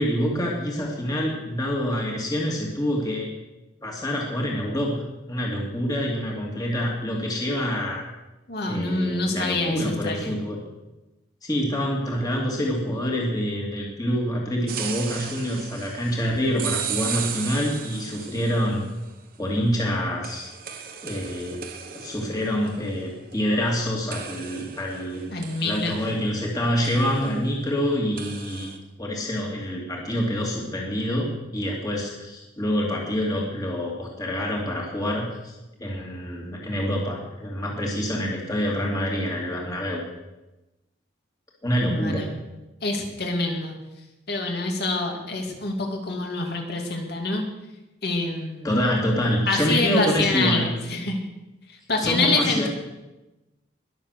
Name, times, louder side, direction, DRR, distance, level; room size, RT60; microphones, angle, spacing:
voice 1, 0.0-3.2 3.8-5.0 5.3-8.0 8.6-10.6 11.4-18.8 19.4-20.5 21.0-21.6 21.9-25.3 25.6-28.7 29.0-35.5 35.8-40.0 41.6-42.2 48.6-50.7 52.0-52.7, equal, 20° left, -2 dB, 2.4 m, -26 dB
voice 2, 8.5-10.4 25.3-26.0 41.8-42.3 42.8-43.8 44.3-47.4 48.0-48.7 49.5-51.2 51.7-52.7, left 3 dB, 55° left, 2 dB, 2.6 m, -26 dB
sound 1, 14.7-18.9 20.2-23.8 24.1-26.5 26.8-27.4 28.2-28.8, right 8 dB, 45° right, 1.3 m, -36 dB
21.5 x 7.4 x 6.6 m, 1.0 s
head